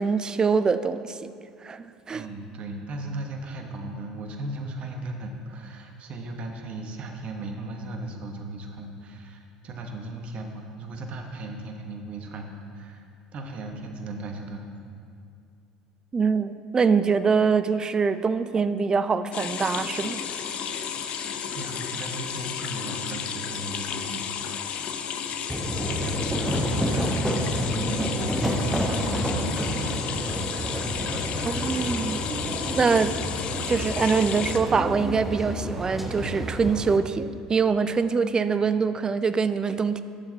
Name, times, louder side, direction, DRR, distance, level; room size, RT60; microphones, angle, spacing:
voice 1, 0.0-1.3 1.6-2.3 16.1-20.2 31.5-32.2 32.7-33.3 33.7-40.0, right 5 dB, 25° right, 13 dB, 0.4 m, -24 dB
voice 2, 2.1-13.0 13.3-14.7 21.5-24.8 25.9-32.0 32.4-32.6, right 2 dB, 50° right, 3 dB, 1.2 m, -37 dB
sound 1, 19.3-34.6, left 7 dB, 50° left, 0.6 m, -32 dB
sound 2, 25.5-37.0, equal, 5° right, 1.1 m, -29 dB
11.5 x 7.2 x 3.9 m, 2.3 s
hypercardioid pair, 70°, 3 cm